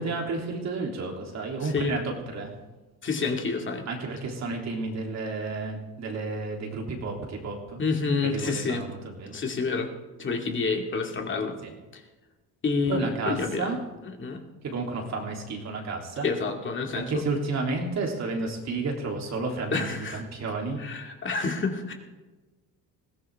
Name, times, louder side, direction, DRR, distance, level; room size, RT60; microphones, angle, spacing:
voice 1, 0.0-2.0 2.3-2.5 3.9-7.8 8.2-9.4 11.6-11.7 12.9-13.8 14.6-16.3 17.0-20.8, right 3 dB, 50° right, 0 dB, 3.5 m, -31 dB
voice 2, 1.6-2.0 3.0-3.8 7.8-8.8 9.3-9.9 10.2-11.5 11.9-12.0 12.6-13.7 14.2-14.4 16.2-17.2 19.7-20.2 20.8-21.9, left 4 dB, 35° left, 2 dB, 2.5 m, -28 dB
20.5 x 16.0 x 3.7 m, 1.2 s
cardioid pair, 120°, 34 cm